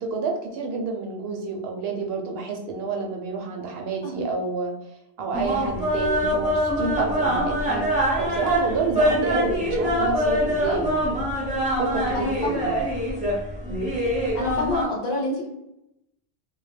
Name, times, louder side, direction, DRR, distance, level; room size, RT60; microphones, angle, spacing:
voice 1, 0.0-4.7 5.2-7.9 8.2-11.2 11.8-12.8, right 4 dB, 70° right, 2 dB, 0.8 m, -29 dB
sound 1, 5.3-14.8, equal, 10° right, 0.7 m, -24 dB
voice 2, 12.1-12.7 13.6-13.8 14.3-15.5, left 2 dB, 70° left, -2 dB, 1.0 m, -28 dB
2.2 x 2.1 x 3.2 m, 0.85 s
omnidirectional pair, 1.0 m